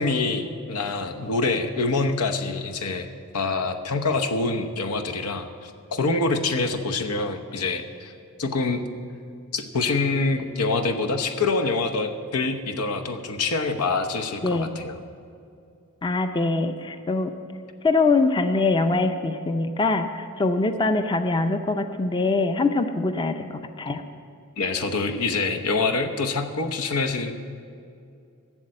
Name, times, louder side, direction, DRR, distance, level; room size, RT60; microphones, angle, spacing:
voice 1, 0.0-3.1 3.3-8.1 8.4-8.8 9.5-15.0 24.6-27.4, left 3 dB, 90° left, 6 dB, 0.9 m, -25 dB
voice 2, 16.0-17.3 17.8-24.0, left 3 dB, 20° left, 8 dB, 0.5 m, -23 dB
12.5 x 7.4 x 7.7 m, 2.5 s
head